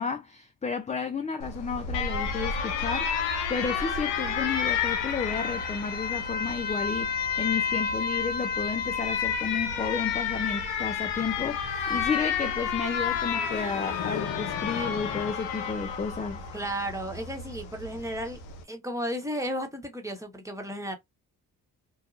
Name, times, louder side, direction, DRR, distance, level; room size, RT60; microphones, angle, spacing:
voice 1, 0.0-3.2 3.5-16.5, left 5 dB, 15° left, 0.4 m, -32 dB
Alarm, 1.4-18.6, left 6 dB, 90° left, 0.6 m, -30 dB
sound 1, 4.7-15.3, left 8 dB, 50° left, 0.7 m, -43 dB
voice 2, 16.5-18.4 18.7-20.9, equal, 5° right, 1.1 m, -33 dB
2.8 x 2.2 x 2.4 m
hypercardioid pair, 40°, 44 cm